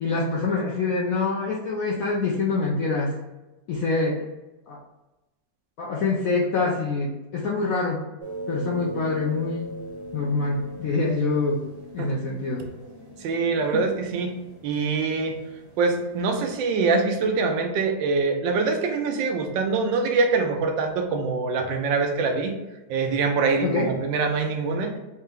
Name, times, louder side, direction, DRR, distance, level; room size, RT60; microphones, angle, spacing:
voice 1, 0.0-3.1 3.7-4.2 4.7-4.8 5.8-8.0 8.5-9.8 10.1-11.6 11.9-12.6 13.6-13.7 23.6-23.9, left 3 dB, 75° left, -3 dB, 0.8 m, -25 dB
sound 1, 8.2-16.5, equal, 35° right, 1.3 m, -40 dB
voice 2, 13.2-14.3 14.6-15.4 15.8-22.5 22.9-24.9, right 4 dB, 80° right, 4 dB, 1.3 m, -24 dB
4.3 x 2.1 x 3.5 m, 1.1 s
omnidirectional pair, 2.0 m